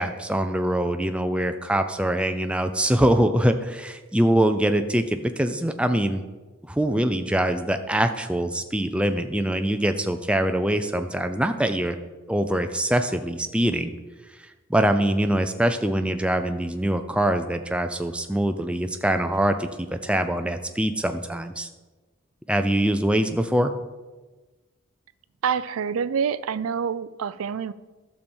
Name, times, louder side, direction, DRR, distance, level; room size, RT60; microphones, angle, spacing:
voice 1, 0.0-6.2 6.7-12.0 12.3-13.9 14.7-21.7 22.5-23.7, right 1 dB, 5° right, 7 dB, 0.5 m, -23 dB
voice 2, 25.4-27.7, right 7 dB, 80° right, 16 dB, 0.4 m, -26 dB
11.5 x 7.0 x 4.5 m, 1.2 s
head